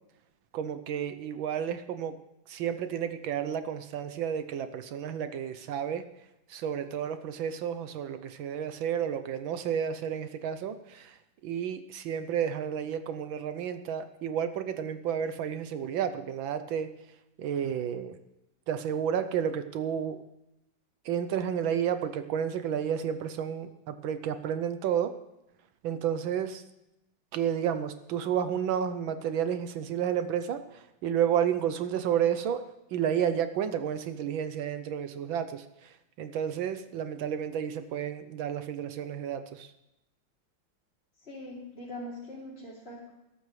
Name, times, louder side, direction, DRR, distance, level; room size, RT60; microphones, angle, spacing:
voice 1, 0.5-2.1 2.5-6.1 6.5-11.2 11.4-16.9 17.4-18.2 18.7-20.2 21.0-25.1 25.8-26.6 27.3-32.6 32.9-39.7, right 8 dB, 75° right, 10 dB, 1.5 m, -31 dB
voice 2, 41.2-43.1, left 1 dB, 30° left, -7 dB, 3.1 m, -42 dB
21.0 x 12.5 x 3.2 m, 0.89 s
omnidirectional pair, 2.2 m